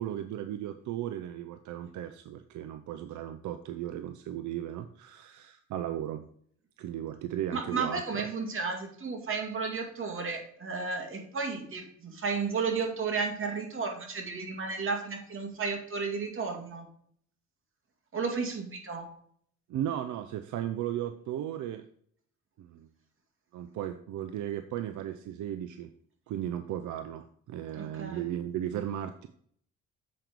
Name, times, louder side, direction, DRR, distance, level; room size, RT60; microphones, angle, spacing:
voice 1, 0.0-6.3 6.8-8.0 19.7-21.8 22.6-22.9 23.5-25.9 26.3-29.3, right 11 dB, 75° right, 9 dB, 0.6 m, -36 dB
voice 2, 7.5-16.9 18.1-19.1 27.8-28.2, right 4 dB, 45° right, 2 dB, 2.3 m, -33 dB
7.7 x 5.2 x 4.5 m, 0.63 s
cardioid pair, 90°, 30 cm